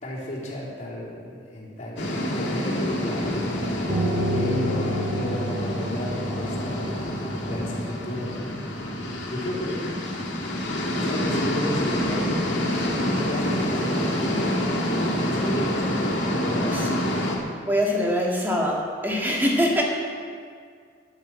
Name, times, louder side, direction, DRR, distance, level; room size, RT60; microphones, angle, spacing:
voice 1, 0.0-3.8 4.3-8.5 9.3-9.8 10.9-12.6 13.0-14.1 15.2-17.1, left 1 dB, 40° left, -6 dB, 3.5 m, -33 dB
sound 1, 2.0-17.4, left 1 dB, 70° left, 2.2 m, -27 dB
Piano, 3.9-9.2, equal, 75° right, 2.6 m, -30 dB
voice 2, 17.7-19.8, equal, 10° right, -2 dB, 2.1 m, -23 dB
11.0 x 9.5 x 7.6 m, 2.1 s
head